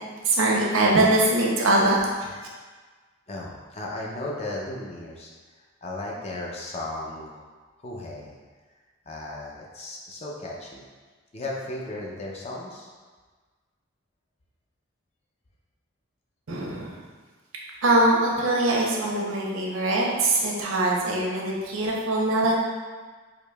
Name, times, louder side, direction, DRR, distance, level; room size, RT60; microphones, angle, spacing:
voice 1, 0.2-2.3 16.5-17.0 17.8-22.5, right 2 dB, 85° right, -2 dB, 0.7 m, -22 dB
voice 2, 3.3-5.3 5.6-7.5 7.8-8.4 9.1-10.9 11.3-12.9, left 2 dB, 30° left, -2 dB, 0.4 m, -35 dB
4.8 x 2.7 x 2.2 m, 1.4 s
head